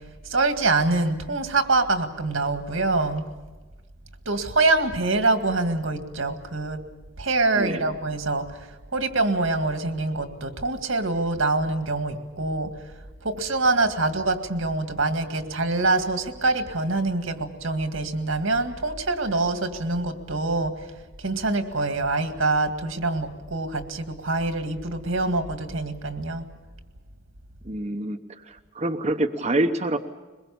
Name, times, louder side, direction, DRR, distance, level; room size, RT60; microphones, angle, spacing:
voice 1, 0.2-3.2 4.3-6.8 7.2-8.6 8.9-12.7 13.2-20.7 21.2-26.5, right 3 dB, 80° right, 7 dB, 2.0 m, -25 dB
voice 2, 7.5-7.9 27.6-30.0, right 1 dB, 35° right, 4 dB, 0.9 m, -26 dB
22.5 x 21.5 x 7.0 m, 1.2 s
head